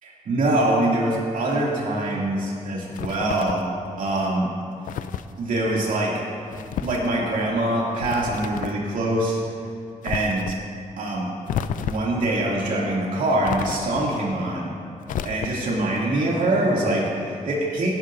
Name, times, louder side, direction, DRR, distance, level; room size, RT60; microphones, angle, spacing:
voice 1, 0.0-3.6 4.0-4.5 5.4-6.1 6.8-9.4 10.0-10.5 11.0-11.3 11.8-14.7 15.2-18.0, right 1 dB, 80° right, -4 dB, 2.8 m, -24 dB
sound 1, 2.9-3.7 4.9-5.3 6.5-7.1 8.0-8.8 10.0-10.6 11.5-12.2 13.4-14.1 15.0-15.8, left 9 dB, 85° left, 0.4 m, -31 dB
18.0 x 10.5 x 2.7 m, 2.5 s
wide cardioid pair, 125°, 13 cm